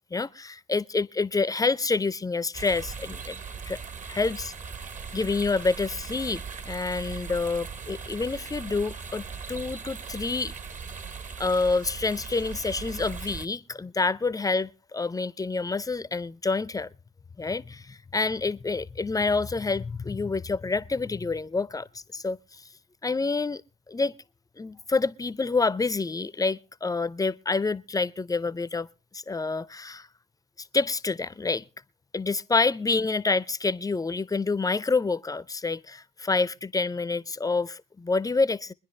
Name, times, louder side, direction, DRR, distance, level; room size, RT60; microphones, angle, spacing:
voice 1, 0.1-3.4 3.6-3.8 4.1-4.5 5.1-10.5 11.4-16.9 17.4-22.7 23.0-23.6 23.9-24.1 24.6-28.9 29.1-30.1 30.7-31.6 32.1-38.7, left 3 dB, 15° left, 0.5 m, -28 dB
sound 1, 2.5-13.5, right 5 dB, 35° right, 1.0 m, -39 dB
23.5 x 10.0 x 3.3 m
supercardioid pair, 75°, 21 cm